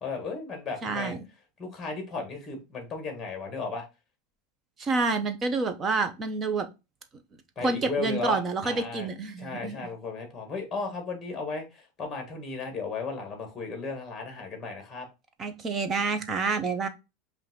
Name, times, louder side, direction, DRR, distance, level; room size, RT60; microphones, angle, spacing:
voice 1, 0.0-1.2 1.6-3.9 7.6-9.1 9.4-15.1, left 4 dB, 15° left, 4 dB, 1.7 m, -35 dB
voice 2, 0.8-1.2 4.8-6.7 7.6-9.9 15.4-16.9, right 3 dB, 25° right, 8 dB, 0.7 m, -28 dB
5.4 x 2.6 x 3.7 m, 0.26 s
supercardioid pair, 155°, 0 cm